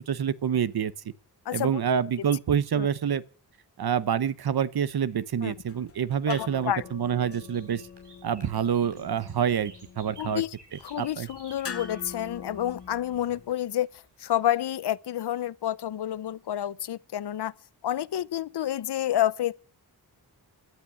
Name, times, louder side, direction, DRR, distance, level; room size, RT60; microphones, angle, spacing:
voice 1, 0.1-0.9 1.5-3.2 3.8-7.8 8.2-10.4 11.0-11.3, right 8 dB, 70° right, 0.9 m, -27 dB
sound 1, 4.5-14.2, right 3 dB, 90° right, 6.8 m, -55 dB
sound 2, 5.5-13.5, left 6 dB, 35° left, 1.0 m, -45 dB
voice 2, 6.3-6.8 10.2-10.5 10.8-13.9 14.2-17.5 17.8-19.5, left 12 dB, 80° left, 0.7 m, -29 dB
17.0 x 11.5 x 6.2 m
wide cardioid pair, 170°, 40 cm